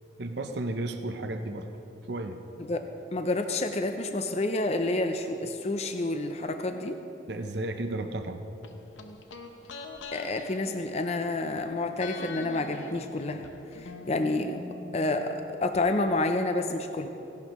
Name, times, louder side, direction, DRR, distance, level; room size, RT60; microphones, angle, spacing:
voice 1, 0.2-1.7 2.1-2.4 7.3-8.5, right 2 dB, 60° right, 6 dB, 0.7 m, -33 dB
voice 2, 3.1-7.0 10.1-13.5 13.8-14.6 14.9-17.1, left 2 dB, 35° left, 7 dB, 0.5 m, -29 dB
sound 1, 8.6-11.6 12.0-15.8 16.1-16.2, left 3 dB, 90° left, 0.8 m, -44 dB
17.0 x 11.5 x 3.0 m, 2.9 s
head